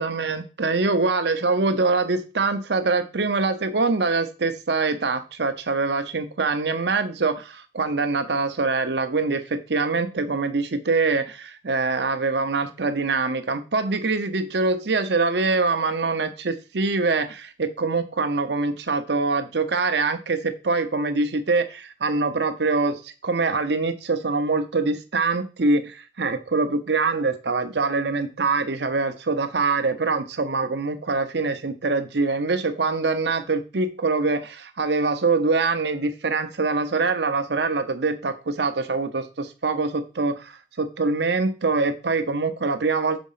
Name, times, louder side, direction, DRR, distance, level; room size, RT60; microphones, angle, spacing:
voice 1, 0.0-43.2, right 3 dB, 70° right, 0.8 m, -24 dB
6.2 x 4.2 x 5.6 m
head